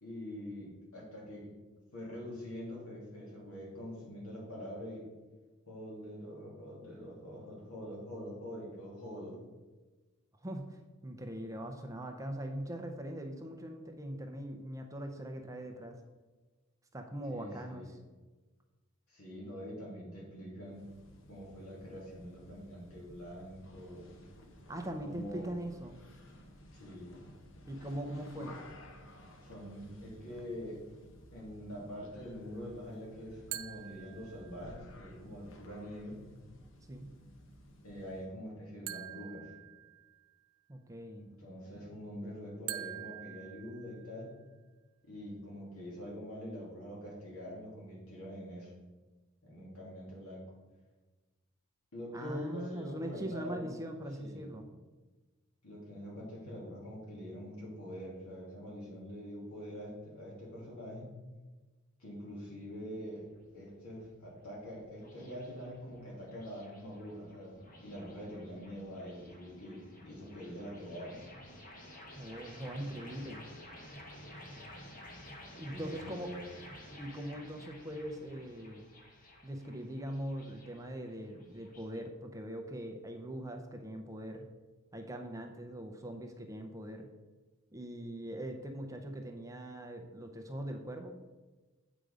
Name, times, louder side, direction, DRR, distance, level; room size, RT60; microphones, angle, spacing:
voice 1, 0.0-1.5 1.9-5.0 5.7-9.4 17.3-17.9 19.1-20.9 21.3-24.1 25.0-25.5 26.7-27.1 29.4-30.8 31.3-36.2 37.8-39.5 41.2-44.3 45.0-48.7 49.4-50.5 51.9-53.9 54.2-54.5 55.6-61.1 62.0-63.3 63.5-67.6 67.8-71.2 75.6-76.4, equal, 90° left, -4 dB, 2.7 m, -45 dB
voice 2, 10.4-16.0 16.9-18.0 24.7-26.0 27.7-28.6 36.9-37.1 40.7-41.3 52.1-54.7 72.2-73.5 75.5-76.3 77.0-78.9 79.4-84.4 84.9-87.1 87.7-91.2, right 1 dB, 15° right, 4 dB, 0.5 m, -41 dB
sound 1, 20.6-38.4, equal, 60° left, 0.9 m, -55 dB
sound 2, 33.5-34.8 38.9-40.4 42.7-44.4, right 13 dB, 80° right, 0.4 m, -45 dB
sound 3, 63.3-82.0, left 1 dB, 40° left, 1.1 m, -53 dB
7.9 x 5.1 x 5.0 m, 1.2 s
head